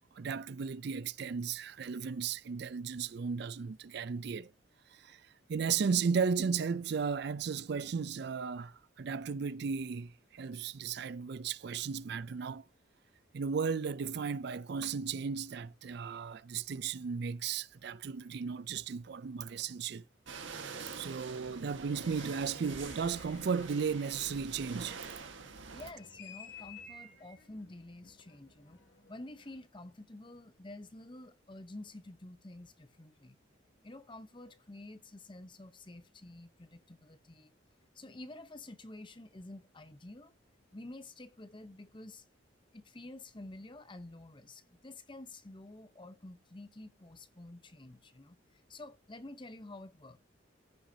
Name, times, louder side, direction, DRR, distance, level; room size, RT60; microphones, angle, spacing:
voice 1, 0.1-4.5 4.9-5.2 5.5-12.6 13.3-20.0 21.0-25.0, right 6 dB, 60° right, 0.4 m, -35 dB
sound 1, 20.3-25.9, right 4 dB, 80° right, 1.5 m, -45 dB
sound 2, 21.9-29.6, left 4 dB, 65° left, 2.3 m, -55 dB
voice 2, 25.7-28.8 29.1-33.4 33.8-37.5 37.9-40.4 40.7-42.2 42.7-50.2, left 2 dB, 25° left, 0.8 m, -49 dB
14.5 x 6.1 x 2.8 m
head